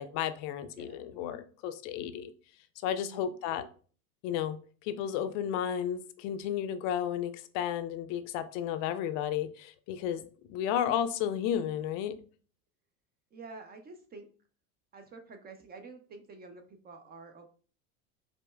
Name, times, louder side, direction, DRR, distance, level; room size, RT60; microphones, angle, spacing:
voice 1, 0.0-2.3 2.8-3.7 4.2-4.6 4.8-12.1, left 9 dB, 60° left, 0.5 m, -33 dB
voice 2, 2.9-3.2 13.3-14.3 14.9-17.5, right 3 dB, 25° right, 0.4 m, -48 dB
5.1 x 2.1 x 2.2 m
hypercardioid pair, 100°, 44 cm